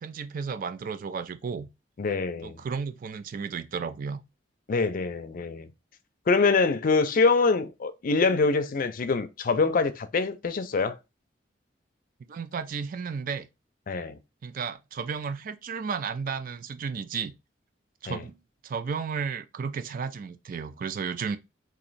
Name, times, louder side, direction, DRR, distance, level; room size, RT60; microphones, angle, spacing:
voice 1, 0.0-1.7 2.4-4.2 12.3-13.5 14.4-17.3 18.0-21.4, right 5 dB, 50° right, 0.4 m, -33 dB
voice 2, 2.0-2.6 4.7-5.7 6.3-11.0 13.9-14.2 18.1-18.2, left 4 dB, 50° left, 0.4 m, -24 dB
3.1 x 2.6 x 4.0 m
head